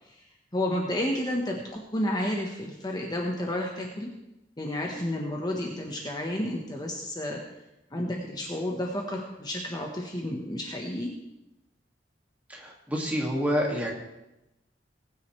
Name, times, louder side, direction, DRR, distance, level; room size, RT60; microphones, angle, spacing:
voice 1, 0.5-4.1 4.6-7.4 7.9-11.1, left 1 dB, 25° left, 0 dB, 1.3 m, -31 dB
voice 2, 12.5-13.9, equal, 10° right, -2 dB, 2.3 m, -28 dB
20.0 x 9.4 x 3.3 m, 0.93 s
head